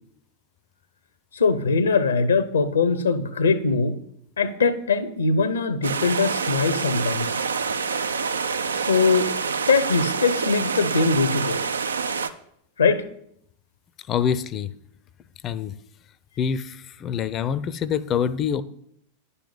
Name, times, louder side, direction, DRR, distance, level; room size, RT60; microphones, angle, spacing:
voice 1, 1.3-4.0 4.4-7.3 8.8-9.3 9.7-11.6 12.8-13.0, left 4 dB, 70° left, 14 dB, 0.7 m, -21 dB
sound 1, 5.8-12.3, right 5 dB, 70° right, 0.6 m, -27 dB
voice 2, 14.1-14.7 15.4-15.7 16.4-18.6, left 8 dB, 30° left, 17 dB, 0.5 m, -25 dB
10.5 x 5.6 x 7.1 m, 0.71 s
figure-of-eight pair, 90°, 0 cm